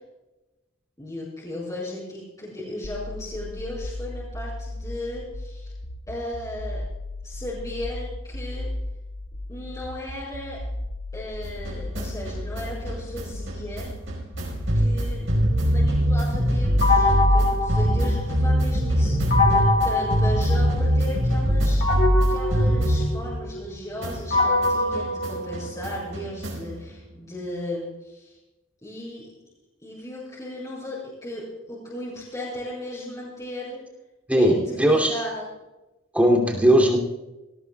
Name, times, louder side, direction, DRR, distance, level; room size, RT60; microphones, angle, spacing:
voice 1, 1.0-5.7 6.1-6.8 7.2-8.7 9.5-10.6 11.1-13.9 14.7-15.3 15.6-22.0 22.3-28.4 28.8-29.3 29.8-33.8 34.3-35.5, left 1 dB, 15° left, -8 dB, 5.4 m, -36 dB
sound 1, 2.8-18.8, left 1 dB, 75° left, 1.4 m, -35 dB
sound 2, 11.4-23.7 24.0-26.8, equal, 65° right, 5.0 m, -23 dB
sound 3, 16.8-18.6 19.3-21.1 21.8-26.1, left 2 dB, 55° left, 2.6 m, -25 dB
voice 2, 34.3-35.2 36.1-37.0, right 1 dB, 5° right, -1 dB, 2.9 m, -18 dB
19.0 x 18.5 x 2.4 m, 1.0 s
head